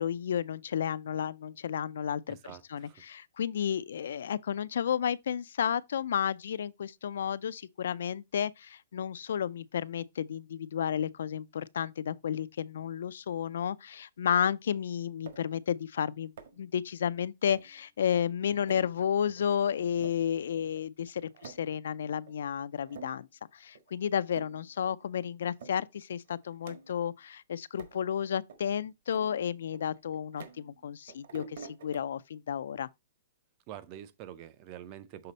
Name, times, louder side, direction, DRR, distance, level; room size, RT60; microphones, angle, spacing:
voice 1, 0.0-2.4 2.7-23.3 23.5-32.9, left 8 dB, 60° left, 0.3 m, -32 dB
voice 2, 2.3-3.0 33.7-35.3, right 11 dB, 20° right, 0.4 m, -46 dB
sound 1, 15.3-15.6 16.4-16.7 17.5-17.8 18.2-18.3 18.7-18.9 19.4-19.5 19.9-20.2 20.8-20.9 21.1-21.7 22.3-22.4 22.8-23.3 23.8-23.9 24.2-24.7 25.0-25.1 25.6-25.8 26.1-27.1 27.8-28.0 28.5-28.6 29.1-30.8 31.1-32.0, right 6 dB, 50° right, 1.4 m, -49 dB
6.7 x 4.1 x 4.0 m
hypercardioid pair, 180°, 0 cm